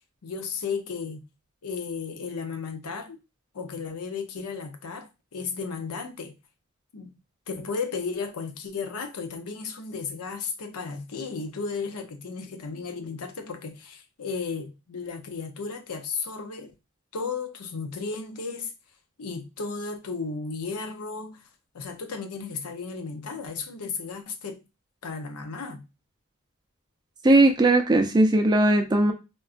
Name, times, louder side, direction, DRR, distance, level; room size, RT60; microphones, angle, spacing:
voice 1, 0.2-1.2 1.6-3.2 3.5-6.3 6.9-7.2 7.5-16.7 17.1-18.7 19.2-21.5 21.7-24.6 25.0-25.8, left 5 dB, 85° left, 0.6 m, -34 dB
voice 2, 27.2-29.1, right 2 dB, 20° right, 0.4 m, -18 dB
3.7 x 2.2 x 2.4 m
head